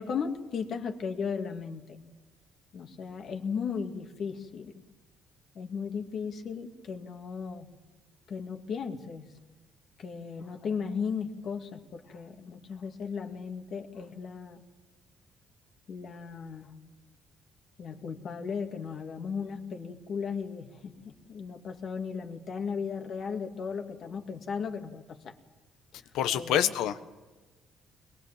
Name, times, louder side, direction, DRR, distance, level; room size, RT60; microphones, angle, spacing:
voice 1, 0.0-2.0 2.7-4.7 5.5-7.7 8.3-9.4 10.0-14.6 15.9-16.7 17.8-25.4 26.3-26.7, left 6 dB, 50° left, 4 dB, 2.2 m, -36 dB
voice 2, 26.1-27.0, left 10 dB, 90° left, 11 dB, 1.3 m, -26 dB
22.5 x 22.0 x 7.5 m, 1.2 s
cardioid pair, 140°, 0 cm